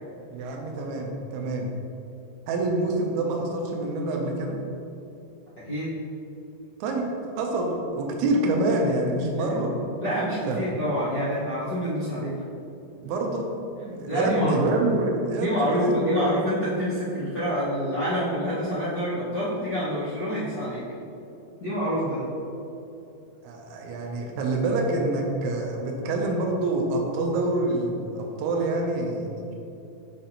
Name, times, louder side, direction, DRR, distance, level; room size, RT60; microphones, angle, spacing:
voice 1, 0.3-1.7 2.5-4.6 6.8-9.7 10.5-10.6 13.0-13.5 13.8-16.2 22.0-22.3 23.4-29.4, right 2 dB, 90° right, 1 dB, 1.7 m, -26 dB
voice 2, 9.2-9.6 10.0-12.3 14.1-14.6 15.3-20.8 21.6-22.2, equal, 70° left, -13 dB, 0.9 m, -27 dB
8.3 x 5.0 x 2.9 m, 2.9 s
omnidirectional pair, 4.2 m